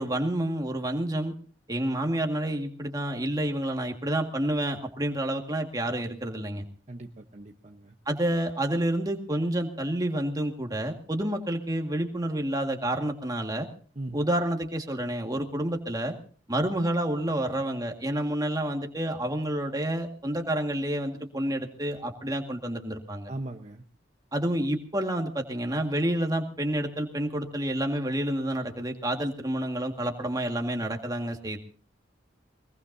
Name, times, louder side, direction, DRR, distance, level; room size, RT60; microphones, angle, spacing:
voice 1, 0.0-1.3 1.7-6.7 8.1-13.7 14.1-16.1 16.5-23.3 24.3-31.6, right 1 dB, 20° right, 3 dB, 1.9 m, -29 dB
voice 2, 6.9-7.9 14.0-14.2 23.3-23.8, right 2 dB, 35° right, 3 dB, 1.0 m, -39 dB
22.0 x 22.0 x 2.8 m, 0.41 s
head